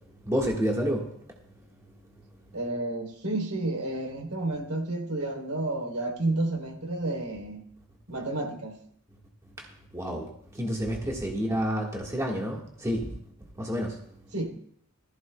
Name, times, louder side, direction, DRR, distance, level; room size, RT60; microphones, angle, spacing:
voice 1, 0.3-1.0 9.9-10.3 10.6-13.1 13.6-13.9, equal, 15° right, -1 dB, 1.5 m, -28 dB
voice 2, 2.5-7.6 8.1-8.8 14.3-14.5, right 2 dB, 80° right, 0 dB, 3.3 m, -31 dB
18.5 x 14.5 x 2.3 m, 0.64 s
head